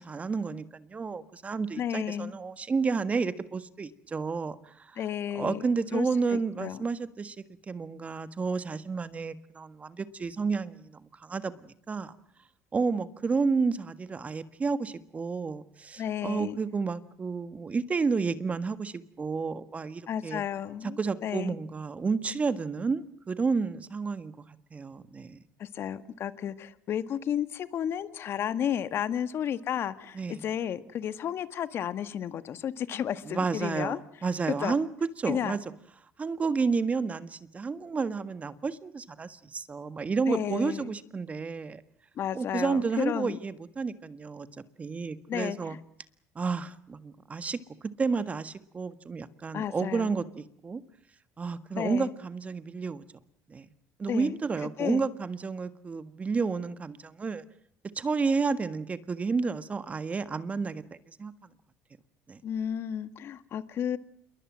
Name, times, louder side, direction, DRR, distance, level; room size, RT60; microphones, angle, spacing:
voice 1, 0.0-5.0 5.3-7.3 7.7-12.1 12.7-20.4 21.0-25.4 30.1-30.4 33.2-35.6 36.2-41.8 42.3-44.5 44.8-45.8 46.3-47.6 48.0-50.8 51.4-53.0 53.5-53.6 54.0-57.4 57.9-61.3 62.3-62.4, right 4 dB, 25° right, 13 dB, 1.6 m, -31 dB
voice 2, 1.8-2.3 5.0-5.7 5.9-6.8 16.0-16.6 20.1-21.6 25.6-34.0 34.5-34.8 35.3-35.6 40.3-40.9 42.1-43.4 45.3-45.8 49.5-50.1 51.7-52.1 54.1-54.4 54.8-55.1 62.4-64.0, left 9 dB, 50° left, 13 dB, 1.8 m, -32 dB
28.0 x 22.5 x 7.6 m, 0.66 s
cardioid pair, 105°, 5 cm